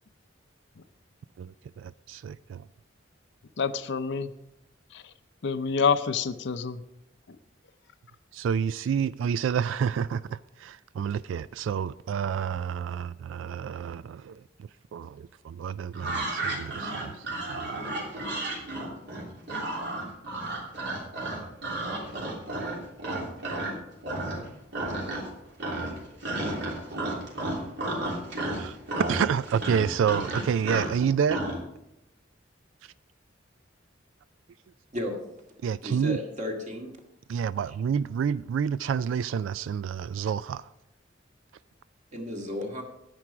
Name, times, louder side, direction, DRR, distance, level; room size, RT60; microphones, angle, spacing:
voice 1, 1.4-2.7 8.3-17.8 23.1-23.2 28.6-28.8 29.1-31.4 35.6-36.2 37.3-40.7, right 7 dB, 80° right, 0.3 m, -29 dB
voice 2, 3.6-4.3 4.9-5.1 5.4-6.8, left 5 dB, 65° left, 0.6 m, -27 dB
sound 1, 15.9-23.8 24.0-24.5 24.7-25.3 25.6-31.6, right 2 dB, 65° right, 3.1 m, -32 dB
voice 3, 35.8-37.0 42.1-42.8, left 1 dB, 40° right, 2.0 m, -34 dB
10.5 x 9.6 x 4.9 m
head